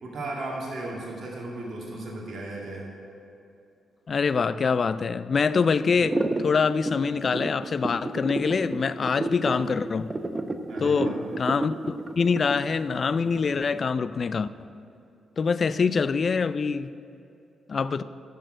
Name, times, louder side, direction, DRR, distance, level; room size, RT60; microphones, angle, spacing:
voice 1, 0.0-2.9 10.7-11.2, right 2 dB, 55° right, -3 dB, 2.4 m, -35 dB
voice 2, 4.1-10.1 10.8-14.5 15.4-16.9 17.7-18.0, left 5 dB, 50° left, 15 dB, 0.4 m, -25 dB
sound 1, 6.0-13.8, right 2 dB, 30° right, 0.8 m, -31 dB
10.5 x 6.6 x 7.8 m, 2.7 s
supercardioid pair, 50°, 0 cm